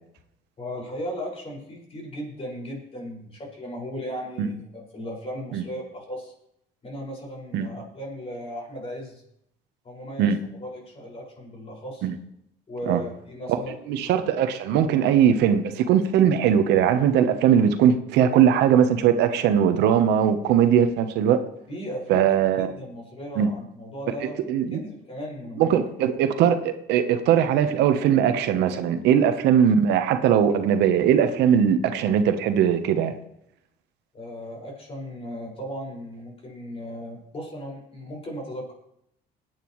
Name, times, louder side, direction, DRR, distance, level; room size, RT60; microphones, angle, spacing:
voice 1, 0.6-6.3 6.8-9.2 9.8-10.3 10.6-12.1 12.7-13.8 21.7-25.8 34.1-38.7, equal, 35° left, -2 dB, 5.5 m, -36 dB
voice 2, 13.9-21.4 22.1-22.7 23.4-23.5 24.5-24.8 25.6-33.1, right 8 dB, 85° right, 9 dB, 1.0 m, -20 dB
20.5 x 9.2 x 3.1 m, 0.76 s
cardioid pair, 110°, 17 cm